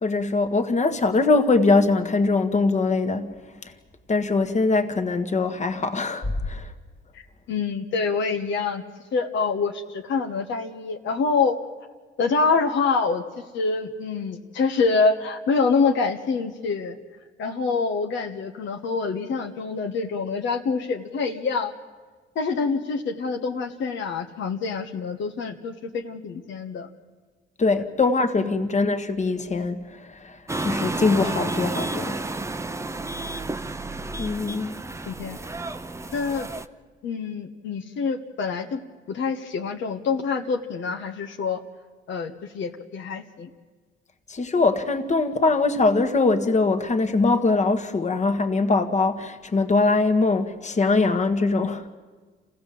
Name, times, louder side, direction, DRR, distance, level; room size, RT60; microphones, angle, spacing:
voice 1, 0.0-3.3 4.1-6.7 27.6-32.2 34.2-34.7 44.3-51.9, left 3 dB, 35° left, 1.7 m, -22 dB
voice 2, 7.5-8.8 9.1-11.6 12.2-13.2 13.5-17.0 17.4-21.7 22.3-26.9 27.8-27.9 28.4-28.6 35.1-35.4 36.1-36.5 37.0-38.8 39.1-41.6 42.1-43.5, left 4 dB, 70° left, 1.3 m, -26 dB
sound 1, 30.5-36.7, right 2 dB, 15° right, 0.7 m, -31 dB
27.0 x 16.0 x 7.7 m
cardioid pair, 90°, 20 cm